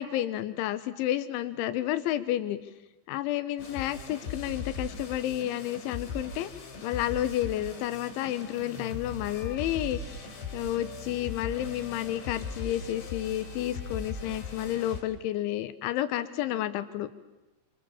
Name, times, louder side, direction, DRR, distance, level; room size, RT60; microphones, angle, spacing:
voice 1, 0.0-2.6 3.1-6.5 6.8-10.0 10.5-17.1, left 13 dB, 85° left, 12 dB, 3.6 m, -31 dB
sound 1, 3.6-15.0, left 4 dB, 65° left, 5.5 m, -39 dB
29.5 x 25.5 x 7.3 m, 1.0 s
omnidirectional pair, 5.3 m